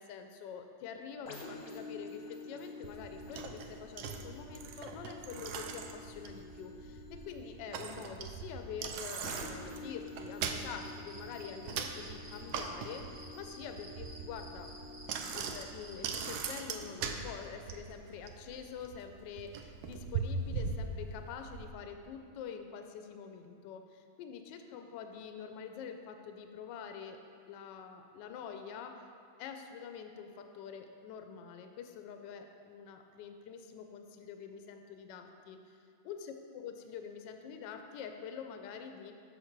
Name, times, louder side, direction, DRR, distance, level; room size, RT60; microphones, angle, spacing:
voice 1, 0.0-14.7 15.3-27.2 27.5-29.1 29.4-39.1, left 7 dB, 75° left, 6 dB, 1.2 m, -46 dB
sound 1, 1.3-18.8 19.3-19.5, left 3 dB, 50° left, 1.1 m, -50 dB
Bicycle, 2.8-21.7, right 5 dB, 75° right, 0.9 m, -41 dB
sound 2, 10.7-16.2, right 1 dB, 45° right, 1.3 m, -54 dB
6.5 x 6.4 x 4.5 m, 2.4 s
omnidirectional pair, 2.1 m